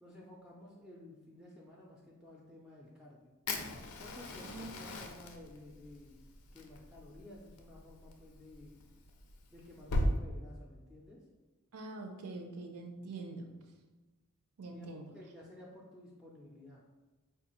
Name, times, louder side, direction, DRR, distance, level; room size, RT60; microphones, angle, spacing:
voice 1, 0.0-3.3 4.0-6.2 6.5-8.8 9.5-11.2 14.7-14.9 15.1-16.8, left 1 dB, 5° right, -4 dB, 0.3 m, -54 dB
Fire, 3.5-10.1, left 1 dB, 85° left, 0.5 m, -39 dB
voice 2, 4.5-5.0 11.7-13.5 14.6-15.1, right 2 dB, 85° right, 4 dB, 0.6 m, -45 dB
4.3 x 2.3 x 3.0 m, 1.2 s
head